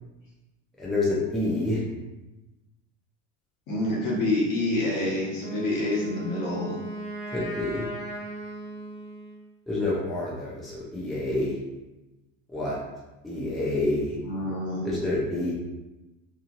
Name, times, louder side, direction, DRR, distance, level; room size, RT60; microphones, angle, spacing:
voice 1, 0.8-1.8 7.3-7.8 9.7-11.5 12.5-12.8 13.2-14.2 14.8-15.5, left 2 dB, ahead, -7 dB, 0.5 m, -28 dB
voice 2, 3.7-6.8 14.2-14.9, left 2 dB, 50° left, -5 dB, 1.3 m, -27 dB
Wind instrument woodwind instrument, 5.3-9.5, right 2 dB, 35° left, 1.1 m, -37 dB
2.9 x 2.4 x 2.6 m, 1.1 s
supercardioid pair, 100°, 39 cm